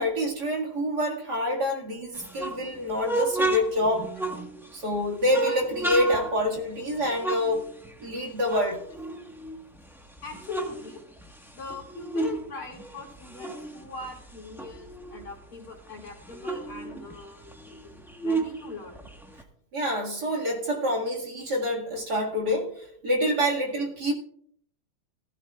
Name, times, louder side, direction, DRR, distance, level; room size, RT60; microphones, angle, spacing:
voice 1, 0.0-4.1 4.7-7.7 8.0-8.8 19.7-24.1, equal, 50° right, -2 dB, 2.6 m, -27 dB
sound 1, 2.1-4.8 5.3-8.2 8.4-9.8 10.2-12.4 12.7-15.3 15.6-15.7 16.0-19.4, right 2 dB, ahead, 0.9 m, -32 dB
voice 2, 10.2-11.0 11.5-19.1, left 3 dB, 75° left, -1 dB, 3.4 m, -41 dB
15.5 x 15.5 x 2.4 m, 0.66 s
omnidirectional pair, 2.4 m